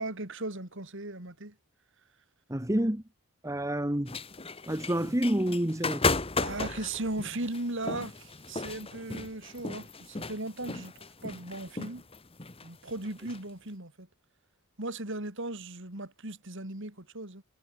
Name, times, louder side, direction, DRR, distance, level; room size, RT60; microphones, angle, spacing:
voice 1, 0.0-1.5 6.4-12.0 12.6-14.1 14.8-17.4, right 2 dB, 55° right, 3.2 m, -37 dB
voice 2, 2.5-3.0 3.4-4.1 4.7-6.1, right 1 dB, 15° right, 1.3 m, -28 dB
sound 1, 4.1-13.4, left 3 dB, 25° left, 1.7 m, -35 dB
head